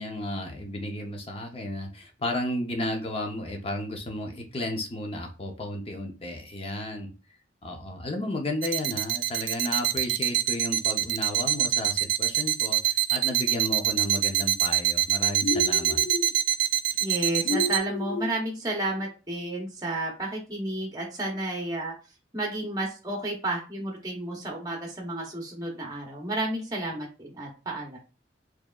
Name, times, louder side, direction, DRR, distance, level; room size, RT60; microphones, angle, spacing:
voice 1, 0.0-7.1 7.6-16.0, left 1 dB, 30° left, 3 dB, 0.7 m, -33 dB
sound 1, 8.6-17.8, right 13 dB, 90° right, 0.4 m, -24 dB
sound 2, 15.4-16.3 17.4-18.4, left 2 dB, 90° left, 0.4 m, -31 dB
voice 2, 17.0-21.9 22.3-28.0, right 1 dB, 20° right, 1 dB, 0.8 m, -31 dB
4.6 x 2.9 x 2.4 m, 0.33 s
head